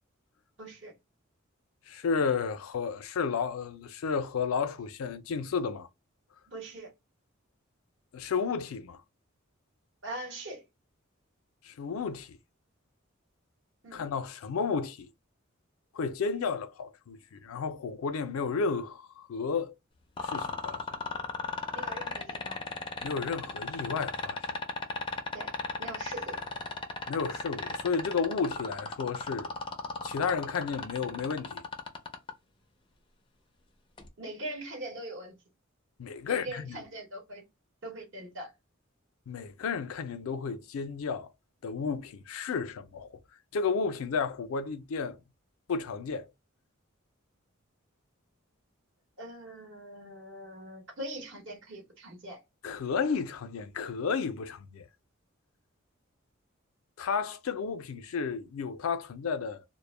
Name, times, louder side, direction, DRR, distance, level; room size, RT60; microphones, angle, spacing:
voice 1, 0.6-0.9 6.5-6.9 10.0-10.6 13.8-14.0 21.7-22.6 25.3-26.4 34.2-35.4 36.2-37.5 37.8-38.5 49.2-52.4, right 1 dB, 60° right, 0.9 m, -42 dB
voice 2, 1.9-5.9 8.1-9.0 11.6-12.4 13.9-15.1 15.9-19.7 20.2-21.0 23.0-24.6 27.1-29.5 30.0-31.6 36.0-36.8 39.3-41.3 41.6-43.2 43.5-45.2 45.7-46.2 52.6-54.9 57.0-59.6, left 5 dB, 90° left, 0.4 m, -32 dB
sound 1, 20.2-32.3 34.0-34.1, left 4 dB, 25° left, 0.4 m, -35 dB
2.1 x 2.0 x 3.1 m
head